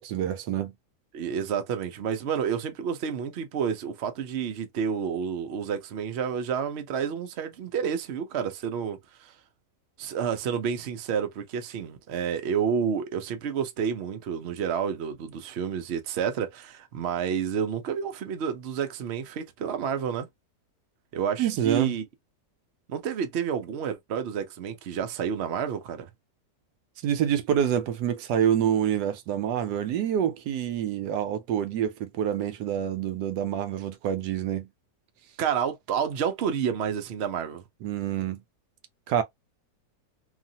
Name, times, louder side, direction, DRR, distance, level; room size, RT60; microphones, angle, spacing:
voice 1, 0.1-0.7 21.4-21.9 27.0-34.7 37.8-38.4 39.1-39.2, right 9 dB, 80° right, 1.1 m, -27 dB
voice 2, 1.1-9.3 10.0-20.3 21.1-22.0 22.9-26.1 35.4-37.6, right 7 dB, 55° right, 0.7 m, -30 dB
2.8 x 2.5 x 2.7 m
omnidirectional pair, 1.8 m